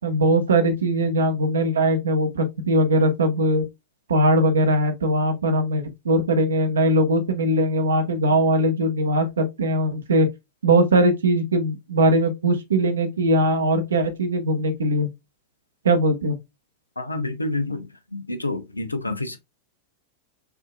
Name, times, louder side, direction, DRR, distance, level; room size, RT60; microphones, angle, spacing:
voice 1, 0.0-3.6 4.1-10.3 10.6-15.1 15.8-16.3, right 1 dB, 70° right, 0.9 m, -20 dB
voice 2, 17.0-17.9 18.1-19.4, left 2 dB, 80° left, 0.6 m, -28 dB
5.7 x 2.8 x 2.2 m
figure-of-eight pair, 90°, 0 cm